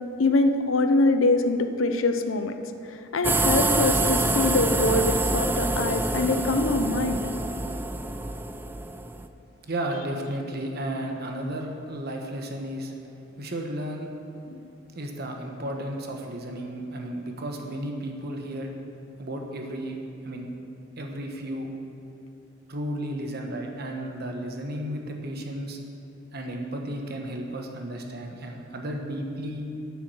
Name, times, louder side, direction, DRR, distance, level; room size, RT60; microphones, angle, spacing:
voice 1, 0.2-2.5 3.1-7.2 14.5-14.6, left 2 dB, 75° left, 8 dB, 0.7 m, -24 dB
sound 1, 3.2-9.3, right 2 dB, 10° right, 0.4 m, -26 dB
voice 2, 9.7-12.9 13.4-14.1 15.0-18.7 19.2-20.0 20.2-20.5 21.0-21.7 22.7-25.8 26.3-29.6, right 1 dB, 50° right, 2 dB, 1.2 m, -33 dB
9.5 x 8.5 x 6.2 m, 2.9 s
head